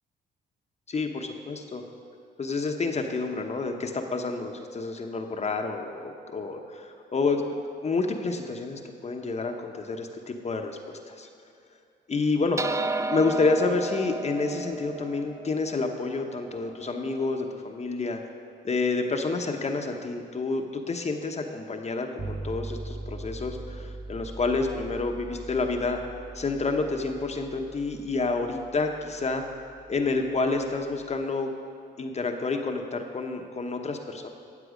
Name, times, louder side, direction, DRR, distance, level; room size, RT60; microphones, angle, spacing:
voice 1, 0.9-1.8 2.4-7.5 7.8-11.3 12.1-12.6 13.1-18.2 18.6-26.0 26.3-29.4 29.9-31.5 32.0-34.3, left 3 dB, 35° left, 3 dB, 1.0 m, -29 dB
sound 1, 12.6-17.2, right 3 dB, 15° right, 0.3 m, -33 dB
sound 2, 22.2-31.2, right 2 dB, 40° right, 2.8 m, -41 dB
13.5 x 7.6 x 5.1 m, 2.3 s
cardioid pair, 90°, 20 cm